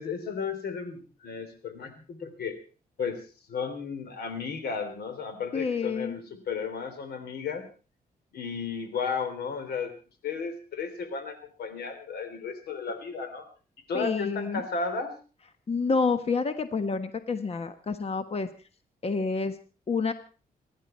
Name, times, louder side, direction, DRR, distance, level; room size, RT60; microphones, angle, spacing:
voice 1, 0.0-2.6 3.0-3.2 3.5-7.7 8.3-9.9 10.2-13.5 13.9-15.1, left 5 dB, 85° left, 9 dB, 3.4 m, -34 dB
voice 2, 5.5-6.1 13.9-14.6 15.7-18.5 19.0-19.6 19.9-20.1, left 4 dB, 40° left, 10 dB, 1.3 m, -28 dB
27.0 x 11.0 x 4.4 m, 0.38 s
cardioid pair, 95°, 16 cm